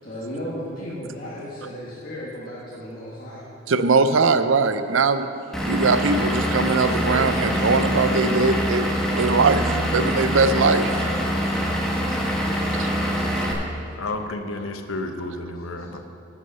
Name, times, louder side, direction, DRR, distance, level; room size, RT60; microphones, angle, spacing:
voice 1, 0.0-3.4 5.5-5.6 8.9-9.1, equal, 45° left, -7 dB, 1.4 m, -35 dB
voice 2, 3.7-5.3 5.7-8.9 9.2-10.9 12.8-12.9, right 4 dB, 60° right, 11 dB, 0.5 m, -21 dB
Vehicle / Engine, 5.5-13.5, equal, ahead, 1.2 m, -24 dB
voice 3, 14.0-16.1, left 2 dB, 65° left, 6 dB, 0.8 m, -31 dB
11.0 x 6.2 x 6.7 m, 2.8 s
head